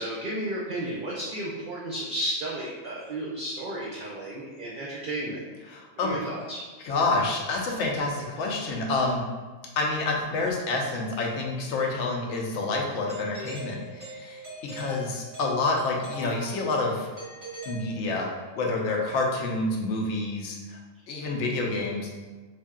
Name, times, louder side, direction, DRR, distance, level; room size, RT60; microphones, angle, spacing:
voice 1, 0.0-5.4 6.0-6.6, right 1 dB, 50° right, -5 dB, 0.6 m, -33 dB
voice 2, 5.7-6.2 6.8-9.2 9.8-14.4 14.7-17.1 17.7-20.8 21.1-22.1, left 3 dB, 75° left, 0 dB, 1.0 m, -28 dB
Doorbell, 13.1-18.5, equal, 15° right, 1.0 m, -42 dB
3.2 x 2.6 x 3.6 m, 1.3 s
omnidirectional pair, 1.3 m